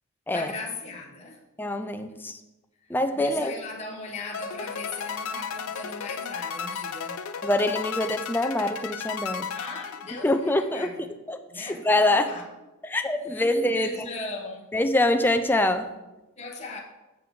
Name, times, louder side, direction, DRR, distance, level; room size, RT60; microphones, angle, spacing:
voice 1, 0.3-1.4 3.1-7.3 9.5-11.1 11.5-12.5 13.2-14.7 16.4-16.8, left 3 dB, 30° left, -1 dB, 1.0 m, -38 dB
voice 2, 1.6-2.4 2.9-3.5 7.4-9.5 10.1-10.9 11.3-12.3 12.8-13.9 14.7-15.9, left 1 dB, 10° left, 7 dB, 0.4 m, -25 dB
sound 1, 4.3-10.6, left 6 dB, 65° left, 0.5 m, -34 dB
7.6 x 7.6 x 3.6 m, 1.0 s
head